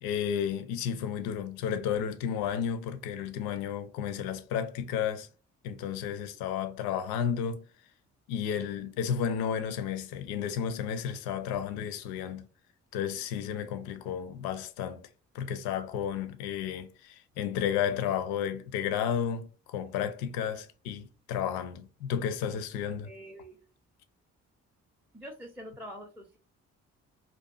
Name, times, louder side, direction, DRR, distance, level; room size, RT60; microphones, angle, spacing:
voice 1, 0.0-5.3 5.6-7.6 8.3-12.5 12.9-15.0 15.3-23.1, left 8 dB, 65° left, 0.5 m, -32 dB
voice 2, 23.0-23.6 25.1-26.4, equal, 5° right, 0.5 m, -45 dB
2.6 x 2.3 x 2.3 m
figure-of-eight pair, 40°, 40 cm